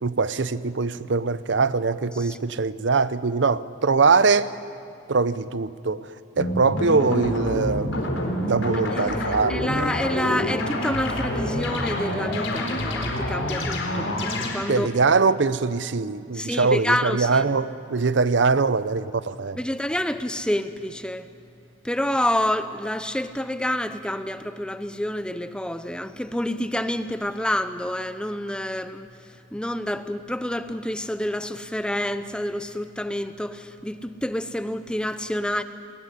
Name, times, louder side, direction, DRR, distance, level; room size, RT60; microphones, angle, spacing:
voice 1, 0.0-4.5 5.1-6.1 6.4-7.9 8.5-9.9 14.7-19.6, right 4 dB, 65° right, 15 dB, 0.6 m, -22 dB
sound 1, 6.4-14.5, left 1 dB, 80° left, 4.2 m, -27 dB
voice 2, 8.9-14.9 16.3-17.4 19.6-21.3 21.8-29.1 29.5-35.6, left 1 dB, 5° left, 11 dB, 0.6 m, -28 dB
20.5 x 19.5 x 10.0 m, 2.4 s
head